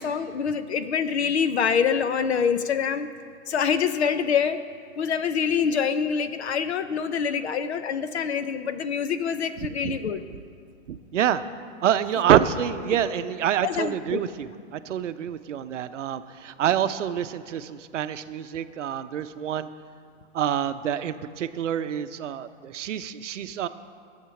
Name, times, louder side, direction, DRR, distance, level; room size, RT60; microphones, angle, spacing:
voice 1, 0.0-3.1 3.5-4.6 5.0-10.2 13.6-14.2, left 7 dB, 55° left, 11 dB, 0.6 m, -25 dB
voice 2, 10.9-11.4 11.8-19.7 20.3-23.7, right 10 dB, 70° right, 11 dB, 0.7 m, -26 dB
12.5 x 7.4 x 5.9 m, 2.1 s
hypercardioid pair, 175°, 38 cm